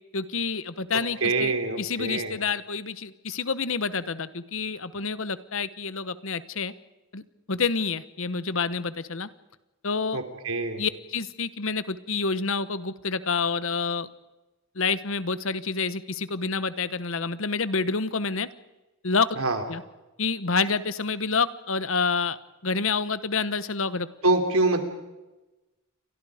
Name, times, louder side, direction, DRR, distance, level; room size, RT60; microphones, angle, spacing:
voice 1, 0.1-1.5 1.8-6.7 7.1-7.2 7.5-9.3 9.8-10.2 10.8-14.1 14.7-18.5 19.0-19.3 19.7-19.8 20.2-22.4 22.6-24.1, left 4 dB, 65° left, 15 dB, 1.1 m, -28 dB
voice 2, 0.9-2.4 10.1-10.8 19.4-19.6 24.2-24.8, right 3 dB, 75° right, 6 dB, 3.5 m, -25 dB
29.5 x 24.0 x 5.1 m, 1.1 s
head